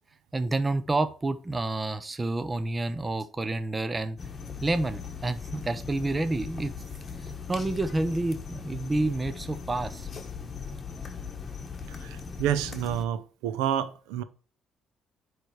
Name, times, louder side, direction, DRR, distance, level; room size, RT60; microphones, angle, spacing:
voice 1, 0.3-4.2 4.6-6.7 7.5-10.1, right 2 dB, 20° right, 0.6 m, -29 dB
sound 1, 4.2-13.1, left 5 dB, 35° left, 1.1 m, -39 dB
voice 2, 12.0-14.2, right 10 dB, 90° right, 0.6 m, -29 dB
9.9 x 3.3 x 4.6 m
supercardioid pair, 85°, 0 cm